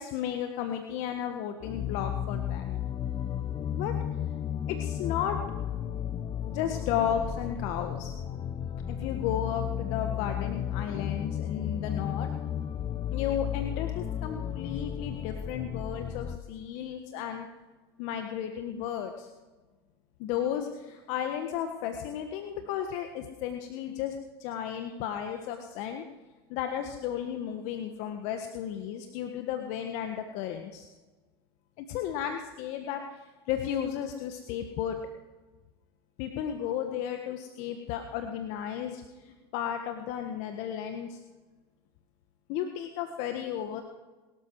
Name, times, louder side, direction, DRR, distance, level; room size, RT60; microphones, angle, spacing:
voice 1, 0.0-2.6 3.8-3.9 4.7-5.4 6.4-8.1 8.9-12.3 13.1-17.5 18.0-19.3 20.2-24.1 24.4-26.0 26.5-30.9 31.8-33.2 33.5-35.0 36.2-41.2 42.5-43.8, left 9 dB, 60° left, 5 dB, 1.5 m, -34 dB
sound 1, 1.6-16.4, left 9 dB, 35° left, 1.0 m, -33 dB
22.5 x 13.0 x 4.8 m, 1.3 s
hypercardioid pair, 85°, 13 cm